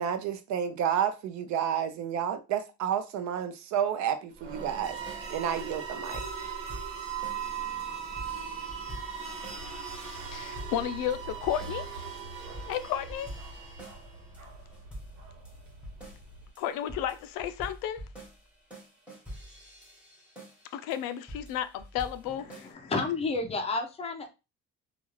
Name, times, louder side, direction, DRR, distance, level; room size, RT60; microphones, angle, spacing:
voice 1, 0.0-5.0 5.3-6.2, right 8 dB, 60° right, 0.5 m, -30 dB
sound 1, 4.3-14.3, right 6 dB, 40° right, 0.9 m, -39 dB
sound 2, 5.1-7.5 7.8-9.7 10.0-11.9 12.2-14.1 14.3-22.7, equal, 5° right, 0.9 m, -46 dB
Bark, 9.5-16.5, right 1 dB, 85° right, 1.4 m, -48 dB
voice 2, 10.3-11.9 12.6-13.3 16.6-18.0 20.7-23.1, left 10 dB, 85° left, 0.5 m, -33 dB
voice 3, 22.6-24.3, left 3 dB, 20° left, 0.4 m, -31 dB
2.4 x 2.4 x 3.1 m
cardioid pair, 160°, 33 cm